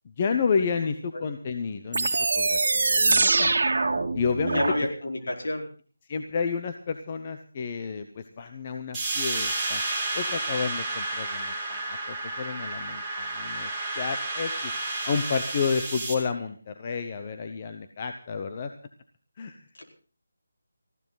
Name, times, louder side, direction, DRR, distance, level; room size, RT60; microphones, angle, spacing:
voice 1, 0.2-2.1 2.3-3.5 4.1-4.6 6.1-9.8 10.1-13.7 14.0-14.5 15.0-18.7 19.4-19.6, left 5 dB, 25° left, 6 dB, 0.8 m, -30 dB
sound 1, 1.9-4.8, right 3 dB, 50° right, 2.4 m, -23 dB
voice 2, 4.5-5.6 19.8-19.9, left 1 dB, 60° left, 2 dB, 4.6 m, -29 dB
sound 2, 8.9-16.1, right 2 dB, 5° right, 2.5 m, -31 dB
20.0 x 15.0 x 4.0 m, 0.40 s
figure-of-eight pair, 175°, 0 cm